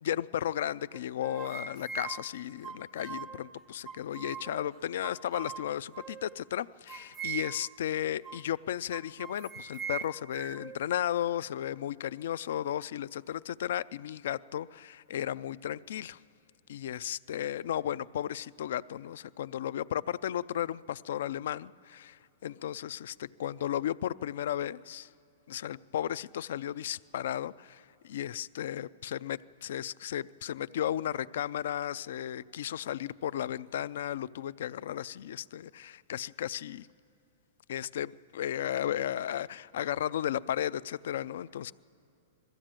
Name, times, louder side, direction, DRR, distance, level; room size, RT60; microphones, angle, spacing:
voice 1, 0.0-16.2 16.7-25.1 25.5-36.9 37.7-41.7, left 11 dB, 65° left, 18 dB, 0.4 m, -34 dB
sound 1, 0.9-3.4 3.8-4.7 5.0-6.4 6.9-7.8 8.2-8.5 8.9-10.8, right 7 dB, 15° right, 0.5 m, -41 dB
21.0 x 14.5 x 8.9 m, 2.8 s
hypercardioid pair, 160°, 0 cm